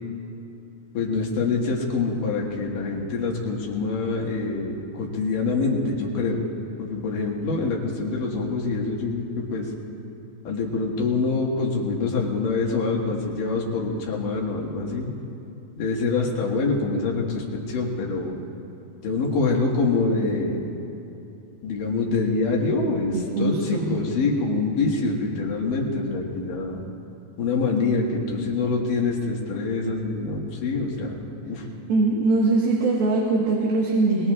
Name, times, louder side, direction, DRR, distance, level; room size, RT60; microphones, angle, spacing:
voice 1, 0.9-6.4 6.8-9.7 10.4-15.1 15.8-18.4 19.0-20.6 21.6-26.8 27.4-31.6, left 3 dB, 65° left, -1 dB, 3.2 m, -25 dB
voice 2, 23.1-24.0 31.9-34.3, right 3 dB, 80° right, -3 dB, 3.4 m, -22 dB
23.0 x 21.0 x 2.5 m, 2.8 s
omnidirectional pair, 4.2 m